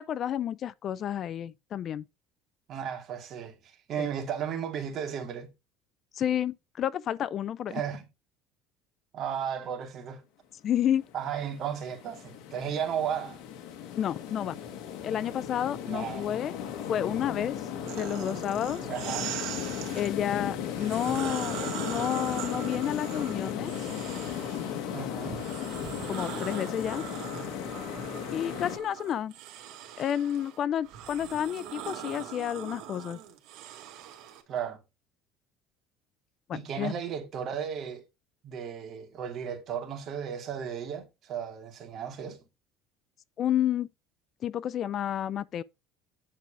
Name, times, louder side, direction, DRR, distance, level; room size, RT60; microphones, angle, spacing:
voice 1, 0.0-2.0 4.0-4.1 6.1-7.8 10.6-11.0 14.0-14.6 15.0-16.5 16.9-17.7 18.0-18.8 20.0-21.6 21.9-23.9 26.1-27.0 28.3-29.3 30.0-33.2 36.5-36.9 43.4-43.9 44.4-45.6, left 10 dB, 40° left, 0.4 m, -30 dB
voice 2, 2.7-3.6 3.9-5.5 7.7-8.1 9.1-10.2 11.1-13.4 15.8-16.3 18.9-19.3 24.9-25.4 34.5-34.8 36.5-38.0 38.4-42.4, right 8 dB, 45° right, 2.5 m, -34 dB
sound 1, 11.0-28.8, left 9 dB, 70° left, 1.7 m, -36 dB
sound 2, 17.9-20.1 20.7-24.8 25.3-34.4, right 11 dB, 70° right, 2.2 m, -41 dB
9.4 x 4.6 x 5.0 m
cardioid pair, 140°, 0 cm